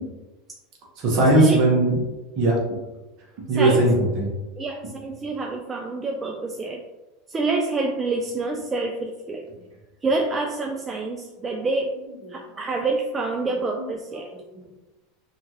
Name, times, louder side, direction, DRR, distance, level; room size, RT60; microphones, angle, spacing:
voice 1, 1.0-2.0 2.4-2.6 3.5-4.3 13.8-13.9 14.5-14.6, right 2 dB, 55° right, -2 dB, 1.0 m, -19 dB
voice 2, 4.6-6.8 7.3-9.5 10.0-11.9 12.3-14.3, right 3 dB, 25° right, 1 dB, 0.3 m, -26 dB
2.8 x 2.4 x 2.9 m, 1.1 s
hypercardioid pair, 85°, 0 cm